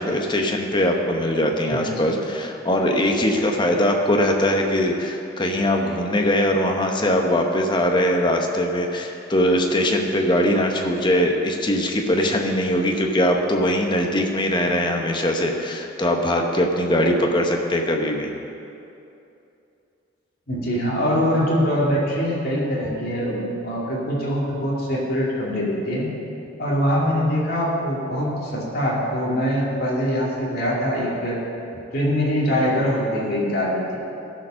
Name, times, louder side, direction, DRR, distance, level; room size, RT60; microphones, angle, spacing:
voice 1, 0.0-18.3, left 1 dB, 25° left, 2 dB, 0.9 m, -21 dB
voice 2, 1.7-2.1 20.5-26.1 26.6-31.4 31.9-34.0, equal, 50° left, -5 dB, 2.6 m, -23 dB
14.5 x 5.1 x 6.3 m, 2.8 s
head